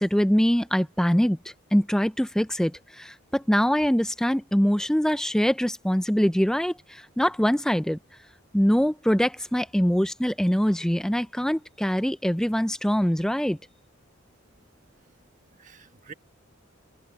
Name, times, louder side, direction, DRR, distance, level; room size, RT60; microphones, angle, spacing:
voice 1, 0.0-8.0 8.5-13.6, equal, 5° left, 0.4 m, -23 dB
voice 2, 14.4-16.1, right 5 dB, 35° right, 1.5 m, -51 dB
head